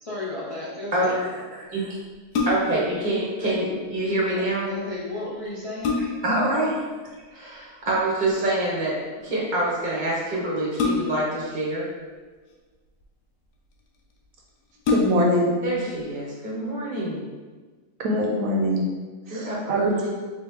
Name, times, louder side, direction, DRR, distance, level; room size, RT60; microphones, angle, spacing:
voice 1, 0.0-1.2 4.3-6.1, left 2 dB, 45° left, -8 dB, 0.4 m, -33 dB
voice 2, 0.9-2.0 2.5-4.7 6.2-6.9 7.3-11.9 15.6-17.2 19.3-20.1, right 1 dB, 35° right, -5 dB, 0.8 m, -26 dB
sound 1, 2.1-2.9 4.9-5.0 5.5-6.4 7.9-8.3 10.8-11.4 12.3-13.0 13.8-13.9 14.2-14.3 14.8-15.5 15.9-16.0, left 4 dB, 90° left, 1.2 m, -26 dB
voice 3, 14.9-15.5 18.0-18.8 19.3-20.0, equal, 65° right, -1 dB, 1.0 m, -23 dB
3.7 x 3.0 x 3.4 m, 1.4 s
omnidirectional pair, 1.6 m